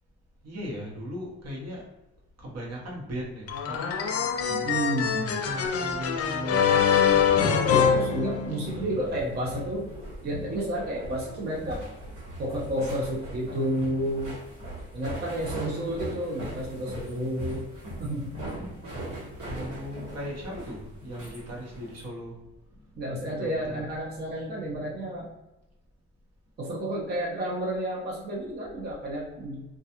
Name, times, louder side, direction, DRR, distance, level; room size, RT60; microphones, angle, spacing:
voice 1, 0.4-1.8 2.4-4.1 5.4-7.5 8.7-9.2 18.2-18.8 19.3-22.4 23.3-23.9, equal, 55° right, -2 dB, 1.0 m, -38 dB
sound 1, 3.5-8.9, left 7 dB, 55° left, 0.4 m, -24 dB
sound 2, 4.1-22.0, right 1 dB, 90° right, 1.2 m, -41 dB
voice 2, 4.5-5.4 7.6-9.9 10.2-11.8 12.4-14.4 14.9-17.6 18.0-18.4 23.0-25.3 26.6-29.6, right 1 dB, 35° right, -4 dB, 0.7 m, -31 dB
2.3 x 2.3 x 2.8 m, 0.98 s
cardioid pair, 90°, 30 cm